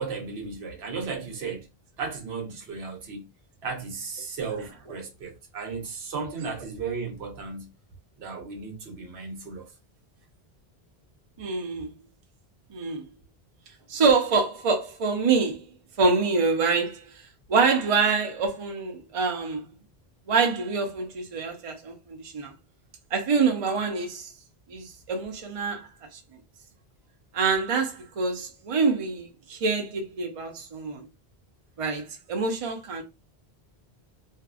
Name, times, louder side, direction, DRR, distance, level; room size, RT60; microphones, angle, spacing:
voice 1, 0.0-1.7 2.0-3.3 3.6-7.7 8.2-9.7, right 5 dB, 90° right, 1.0 m, -35 dB
voice 2, 11.4-11.9 12.7-13.0 13.9-15.6 16.0-17.0 17.5-19.7 20.3-22.5 23.1-24.3 24.7-25.9 27.3-31.1 31.8-33.0, right 4 dB, 40° right, 0.6 m, -25 dB
2.5 x 2.1 x 2.3 m
omnidirectional pair, 1.0 m